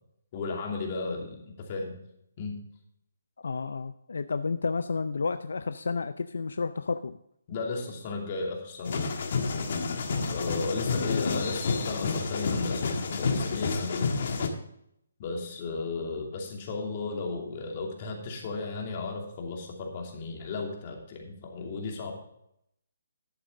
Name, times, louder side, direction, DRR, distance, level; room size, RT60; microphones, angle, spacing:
voice 1, 0.3-1.4 1.7-2.0 2.4-2.5 7.5-9.0 10.3-14.1 15.2-22.1, left 3 dB, 35° left, 0 dB, 2.7 m, -34 dB
voice 2, 3.4-7.2 10.9-11.4, left 4 dB, 75° left, 12 dB, 0.5 m, -31 dB
sound 1, 8.8-14.5, left 4 dB, 55° left, 1.6 m, -29 dB
11.0 x 8.4 x 3.7 m, 0.75 s
hypercardioid pair, 155°, 0 cm